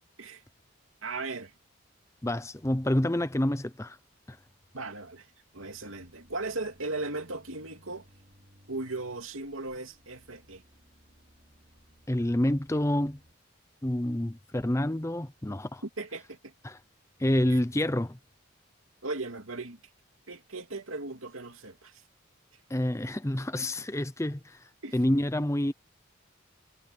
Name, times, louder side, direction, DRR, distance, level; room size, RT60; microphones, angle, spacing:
voice 1, 1.0-1.5 4.7-8.1 8.7-10.6 16.0-16.5 17.5-17.6 19.0-19.8 20.3-22.0 24.8-25.0, right 3 dB, 80° right, 2.8 m, -37 dB
voice 2, 2.2-4.0 4.3-4.4 12.1-13.2 13.8-15.8 16.6-16.8 17.2-18.2 22.7-24.6 24.9-25.7, left 1 dB, 15° left, 0.6 m, -28 dB
sound 1, 5.6-13.3, equal, 40° right, 3.8 m, -61 dB
head